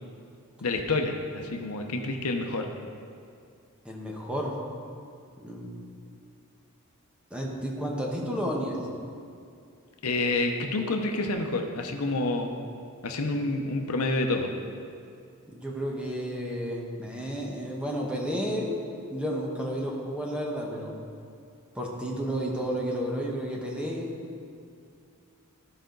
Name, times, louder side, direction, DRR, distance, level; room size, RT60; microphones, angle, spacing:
voice 1, 0.6-2.7 10.0-12.5 13.0-14.5, left 2 dB, 80° left, 4 dB, 0.8 m, -28 dB
voice 2, 3.8-4.6 5.4-5.8 7.3-8.9 15.5-18.8 19.1-20.9 21.7-24.1, equal, 5° right, -2 dB, 1.2 m, -31 dB
15.0 x 5.0 x 3.9 m, 2.4 s
head